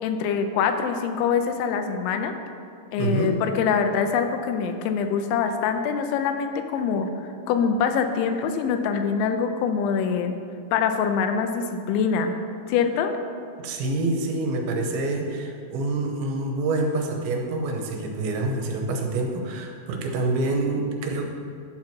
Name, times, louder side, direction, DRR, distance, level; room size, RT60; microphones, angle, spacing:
voice 1, 0.0-2.3 2.9-7.1 7.5-10.3 10.7-12.3 12.7-13.1, left 6 dB, 90° left, 7 dB, 3.0 m, -24 dB
voice 2, 3.0-3.4 13.6-21.3, right 2 dB, 85° right, 2 dB, 3.2 m, -26 dB
11.0 x 4.5 x 5.9 m, 2.4 s
omnidirectional pair, 5.2 m